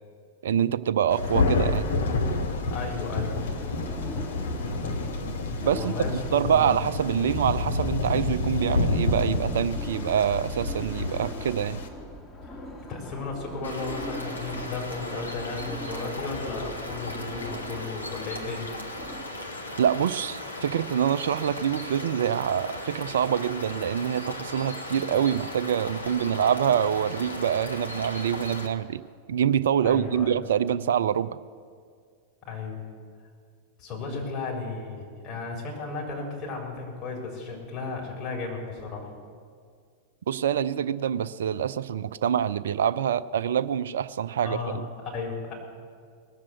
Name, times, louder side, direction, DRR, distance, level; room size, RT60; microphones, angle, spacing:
voice 1, 0.4-1.9 5.6-11.8 19.8-29.0 29.3-31.4 40.3-44.8, right 9 dB, 60° right, 15 dB, 0.4 m, -25 dB
Thunder, 1.1-11.9, left 3 dB, 60° left, 1.1 m, -28 dB
voice 2, 2.7-3.3 5.6-6.7 12.9-18.7 29.8-30.4 32.5-32.8 33.8-39.1 44.4-44.8 45.0-45.5, left 4 dB, 35° left, -2 dB, 4.1 m, -34 dB
sound 1, 3.5-19.2, left 1 dB, 15° left, 1.8 m, -41 dB
sound 2, 13.6-28.7, left 1 dB, 80° left, 1.3 m, -37 dB
19.0 x 7.5 x 7.8 m, 2.1 s
figure-of-eight pair, 90°, 0 cm